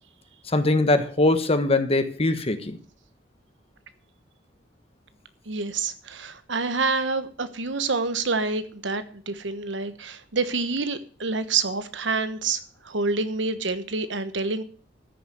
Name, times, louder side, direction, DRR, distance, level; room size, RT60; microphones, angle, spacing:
voice 1, 0.5-2.8, left 2 dB, 35° left, 1.3 m, -22 dB
voice 2, 5.5-12.6 12.8-14.6, right 4 dB, 75° right, 1.3 m, -27 dB
13.5 x 6.7 x 8.0 m
head